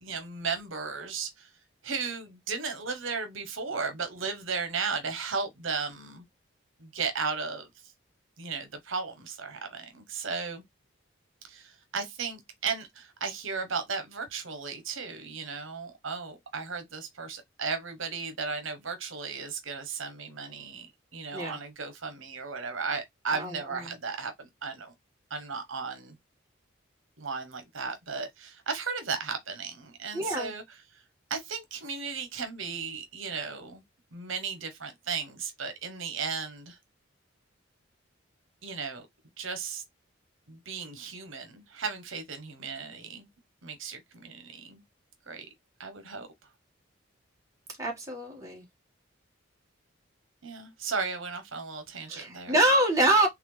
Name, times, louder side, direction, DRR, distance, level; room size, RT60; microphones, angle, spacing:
voice 1, 0.0-1.3 1.8-6.2 6.8-7.7 8.4-10.6 11.5-11.6 11.9-20.9 21.1-24.9 25.3-26.1 27.2-30.6 31.3-33.8 34.1-36.8 38.6-39.1 39.4-39.8 40.5-43.3 43.6-44.8 45.3-45.4 45.8-46.3 50.4-52.5, right 5 dB, 70° right, 1.0 m, -35 dB
voice 2, 23.3-23.9 30.1-30.5 47.8-48.6 52.1-53.3, right 1 dB, 15° right, 1.6 m, -26 dB
4.1 x 3.3 x 3.2 m
head